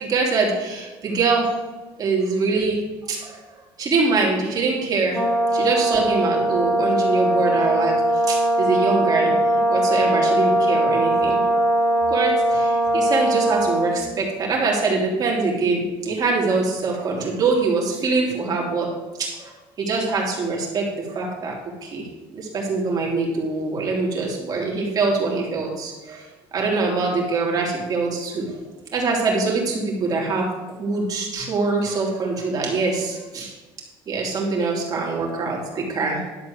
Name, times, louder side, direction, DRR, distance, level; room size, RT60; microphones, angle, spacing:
voice 1, 0.0-1.5 2.0-2.8 3.1-3.4 3.8-5.2 5.5-8.0 8.3-9.4 9.7-11.4 12.1-18.9 19.2-21.5 21.8-22.1 22.3-26.2 26.5-28.5 28.9-33.5 34.1-36.2, right 3 dB, 40° right, -2 dB, 3.2 m, -23 dB
Brass instrument, 5.1-14.0, right 1 dB, 5° left, 2.8 m, -20 dB
11.5 x 4.3 x 7.9 m, 1.2 s
cardioid pair, 140°, 10 cm